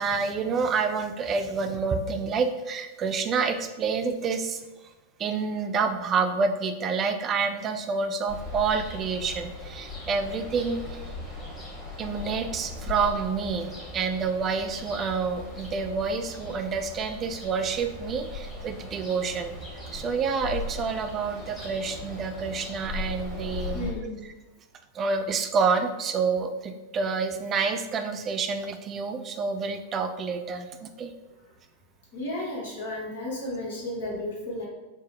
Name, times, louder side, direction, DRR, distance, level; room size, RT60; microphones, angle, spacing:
voice 1, 0.0-4.6 5.2-11.1 12.0-19.5 19.9-23.9 24.9-31.1, right 5 dB, 25° right, 7 dB, 0.3 m, -28 dB
Ocean, 8.3-23.9, left 2 dB, 10° left, 1.2 m, -39 dB
voice 2, 23.7-24.2 32.1-34.7, left 1 dB, 65° left, -4 dB, 1.1 m, -33 dB
3.6 x 2.0 x 3.3 m, 1.1 s
figure-of-eight pair, 90°, 0 cm